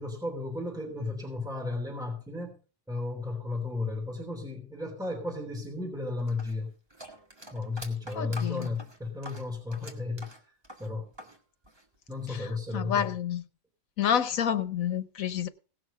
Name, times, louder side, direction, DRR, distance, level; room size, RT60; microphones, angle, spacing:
voice 1, 0.0-2.6 2.9-6.7 7.5-10.3 10.8-11.1 12.1-13.2, left 3 dB, 5° right, 3.0 m, -34 dB
sound 1, 6.3-11.4 11.6-12.5, equal, 20° right, 2.0 m, -46 dB
voice 2, 8.1-8.7 12.7-13.4 14.0-15.5, left 9 dB, 80° left, 1.4 m, -28 dB
18.0 x 6.6 x 5.5 m
omnidirectional pair, 1.4 m